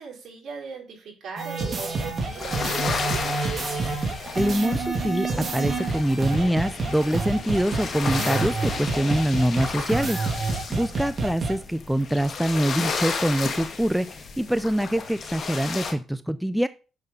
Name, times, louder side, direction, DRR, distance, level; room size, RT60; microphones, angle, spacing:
voice 1, 0.0-3.4 10.7-11.1, right 5 dB, 65° right, -1 dB, 4.4 m, -39 dB
sound 1, 1.4-11.6, right 3 dB, 45° right, 2.6 m, -28 dB
sound 2, 1.7-15.9, left 5 dB, 50° left, 1.9 m, -33 dB
voice 2, 4.4-16.7, equal, 5° right, 13 dB, 0.4 m, -25 dB
7.1 x 6.6 x 5.3 m, 0.34 s
cardioid pair, 90°, 0 cm